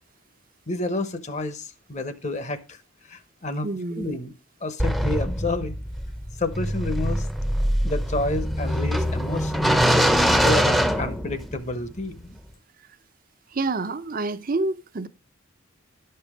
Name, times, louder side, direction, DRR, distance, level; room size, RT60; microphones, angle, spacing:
voice 1, 0.7-2.8 3.1-3.7 4.0-4.3 4.6-5.7 6.4-7.3 7.8-9.7 10.4-12.4, left 2 dB, 35° left, 0.9 m, -29 dB
voice 2, 3.6-4.2 13.5-15.1, right 3 dB, 45° right, 0.7 m, -28 dB
sound 1, 4.8-11.7, equal, ahead, 0.7 m, -23 dB
11.5 x 6.8 x 5.0 m
head